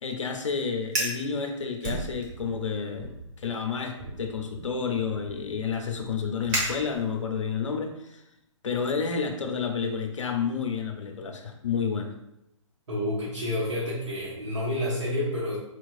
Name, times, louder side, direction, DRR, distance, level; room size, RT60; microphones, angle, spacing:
voice 1, 0.0-8.2 8.6-12.2, left 6 dB, 65° left, 5 dB, 0.6 m, -30 dB
Fire, 0.8-1.2 1.8-2.6 3.0-3.3 4.0-7.3, right 1 dB, 30° right, 1.1 m, -34 dB
voice 2, 12.9-15.6, left 1 dB, 60° right, -7 dB, 1.3 m, -29 dB
4.3 x 3.0 x 2.5 m, 0.82 s
figure-of-eight pair, 125°, 17 cm